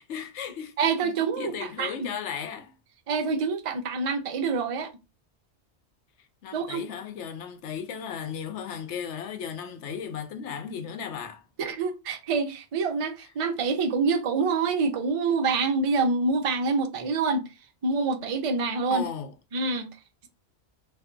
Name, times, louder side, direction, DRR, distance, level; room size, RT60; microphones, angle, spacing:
voice 1, 0.0-0.7 1.4-2.7 6.4-11.4 18.9-19.3, left 7 dB, 85° left, 0.9 m, -35 dB
voice 2, 0.8-2.1 3.1-4.9 6.5-6.8 11.6-17.5 17.8-19.0 19.5-19.9, right 4 dB, 50° right, 0.4 m, -26 dB
2.6 x 2.2 x 3.6 m
omnidirectional pair, 1.2 m